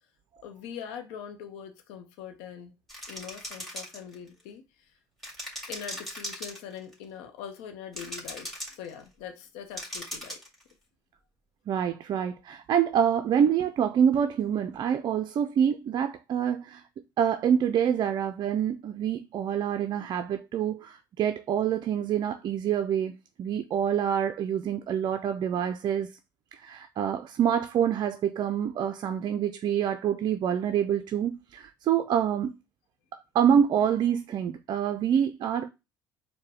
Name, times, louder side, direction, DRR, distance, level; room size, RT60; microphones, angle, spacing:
voice 1, 0.4-2.7 3.1-4.6 5.7-10.4, left 8 dB, 70° left, 0.7 m, -42 dB
sound 1, 2.9-4.4 5.2-6.9 7.9-8.9 9.8-10.6, equal, ahead, 2.1 m, -38 dB
voice 2, 11.7-16.8 17.2-23.1 23.4-26.1 26.5-32.5 33.1-35.7, right 8 dB, 45° right, 0.4 m, -26 dB
4.6 x 2.1 x 4.6 m
hypercardioid pair, 60°, 11 cm